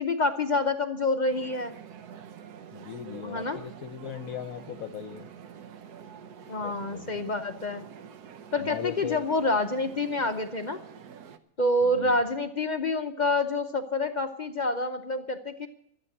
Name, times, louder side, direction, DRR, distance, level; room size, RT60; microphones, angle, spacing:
voice 1, 0.0-1.7 3.2-3.6 6.5-7.9 8.5-10.8 11.6-15.7, left 2 dB, 40° left, 7 dB, 0.6 m, -27 dB
sound 1, 1.3-11.4, right 8 dB, 90° right, 1.4 m, -47 dB
voice 2, 2.7-5.3 6.6-7.3 8.6-9.3 11.8-12.2, left 9 dB, 65° left, 7 dB, 1.2 m, -39 dB
13.0 x 8.2 x 9.7 m, 0.69 s
omnidirectional pair, 1.6 m